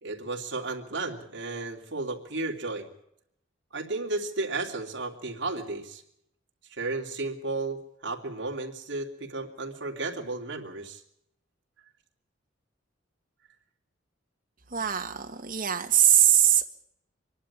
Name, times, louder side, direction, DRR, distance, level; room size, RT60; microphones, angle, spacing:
voice 1, 0.0-2.9 3.7-6.0 6.7-11.0, right 3 dB, 60° right, 0 dB, 3.1 m, -33 dB
voice 2, 14.7-16.6, right 10 dB, 45° right, 5 dB, 1.6 m, -22 dB
24.5 x 11.5 x 10.0 m, 0.76 s
head